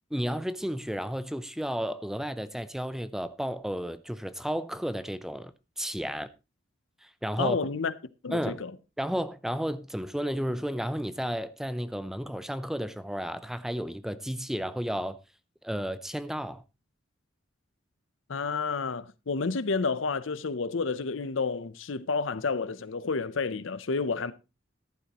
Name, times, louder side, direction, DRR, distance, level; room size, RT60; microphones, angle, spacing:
voice 1, 0.1-6.3 7.0-7.6 8.3-8.6 9.0-15.2 15.6-16.6, equal, ahead, 0.5 m, -32 dB
voice 2, 7.4-7.9 8.2-8.7 18.3-24.3, left 4 dB, 70° left, 0.7 m, -30 dB
14.0 x 11.5 x 3.0 m
head